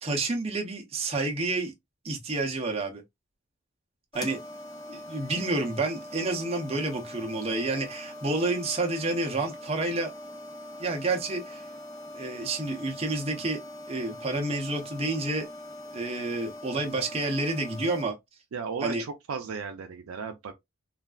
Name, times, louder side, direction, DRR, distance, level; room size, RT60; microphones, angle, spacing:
voice 1, 0.0-1.7 2.0-3.0 4.1-4.4 4.9-10.1 10.8-11.6 12.1-13.6 13.9-15.5 15.9-18.1 18.8-19.0, right 2 dB, 30° right, 0.7 m, -29 dB
sound 1, 4.1-18.0, left 1 dB, 20° left, 0.5 m, -42 dB
voice 2, 18.5-20.5, right 5 dB, 80° right, 0.4 m, -35 dB
3.2 x 2.4 x 2.3 m
head